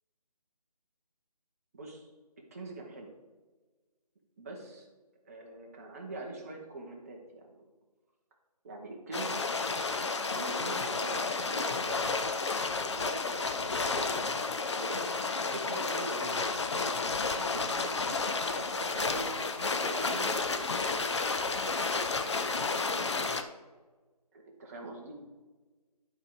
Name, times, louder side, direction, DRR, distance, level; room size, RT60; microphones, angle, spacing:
voice 1, 1.7-2.1 2.5-3.1 4.4-4.9 5.2-7.7 8.6-9.4 10.2-12.1 12.5-14.3 14.7-15.1 15.5-16.5 17.3-18.2 18.5-21.1 22.8-23.2 24.3-25.1, right 2 dB, 25° right, 0 dB, 1.1 m, -43 dB
sound 1, 9.1-23.4, left 4 dB, 45° left, 0.6 m, -31 dB
11.0 x 4.7 x 4.8 m, 1.3 s
figure-of-eight pair, 160°, 20 cm